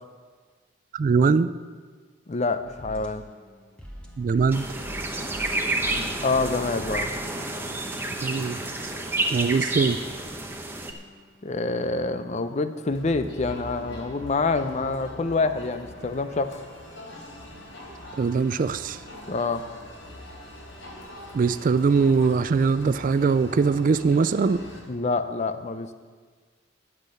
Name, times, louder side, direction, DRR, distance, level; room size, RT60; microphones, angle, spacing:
voice 1, 0.9-1.5 4.2-4.7 8.2-8.6 9.3-10.0 18.2-19.0 21.3-24.6, right 5 dB, 45° right, 14 dB, 0.3 m, -22 dB
voice 2, 2.3-3.2 5.9-7.1 11.4-16.5 19.3-19.6 24.9-25.9, left 3 dB, 35° left, 10 dB, 0.5 m, -27 dB
sound 1, 2.6-8.7 9.5-12.8 13.6-16.7 17.5-17.7, equal, 5° left, 1.3 m, -46 dB
sound 2, 4.5-10.9, right 2 dB, 10° right, 0.8 m, -30 dB
Crowd, 12.9-24.8, left 1 dB, 85° left, 3.4 m, -42 dB
11.0 x 8.4 x 6.3 m, 1.5 s
head